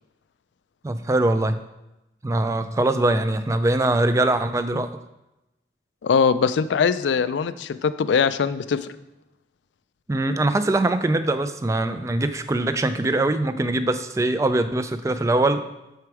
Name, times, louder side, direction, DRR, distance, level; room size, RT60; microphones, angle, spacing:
voice 1, 0.8-1.6 2.2-4.9 10.1-15.6, right 2 dB, 15° right, 11 dB, 0.3 m, -22 dB
voice 2, 6.0-8.9, left 6 dB, 85° left, 13 dB, 0.4 m, -21 dB
6.9 x 4.6 x 4.7 m, 0.97 s
head